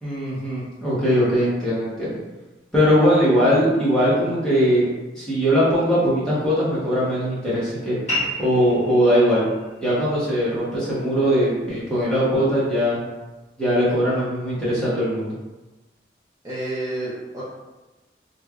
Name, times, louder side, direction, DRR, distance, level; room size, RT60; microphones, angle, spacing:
voice 1, 0.0-2.1 2.7-4.9 5.1-8.0 8.4-9.4 9.8-13.0 13.6-15.3, equal, 5° left, -10 dB, 0.9 m, -20 dB
sound 1, 8.1-13.1, left 1 dB, 40° left, 1.4 m, -34 dB
voice 2, 16.4-17.4, right 1 dB, 20° right, -11 dB, 0.5 m, -29 dB
3.1 x 2.5 x 2.4 m, 1.1 s
head